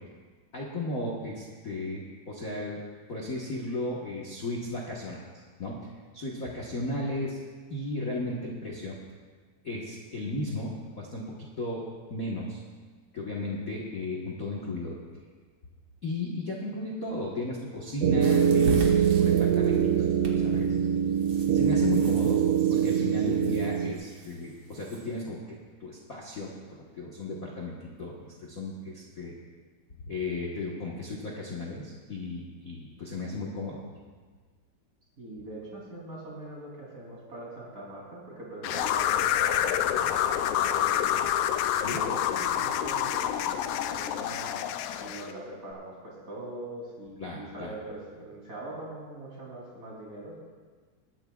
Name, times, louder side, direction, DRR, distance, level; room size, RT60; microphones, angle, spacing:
voice 1, 0.5-2.8 3.1-5.2 5.6-7.4 7.7-9.0 9.6-12.6 13.1-15.0 16.0-20.1 20.4-20.8 21.5-22.4 22.7-29.4 30.0-33.9 41.8-42.0 47.2-47.7, left 2 dB, 70° left, -3 dB, 0.8 m, -35 dB
sound 1, 18.0-23.9, right 8 dB, 75° right, 1.4 m, -23 dB
sound 2, 18.2-25.2, right 3 dB, 50° right, 1.7 m, -39 dB
voice 2, 35.2-41.2 41.8-44.6 44.9-50.4, right 1 dB, 25° right, -4 dB, 3.3 m, -42 dB
sound 3, 38.6-45.3, left 10 dB, 90° left, 2.2 m, -27 dB
21.5 x 10.5 x 2.4 m, 1.5 s
omnidirectional pair, 3.7 m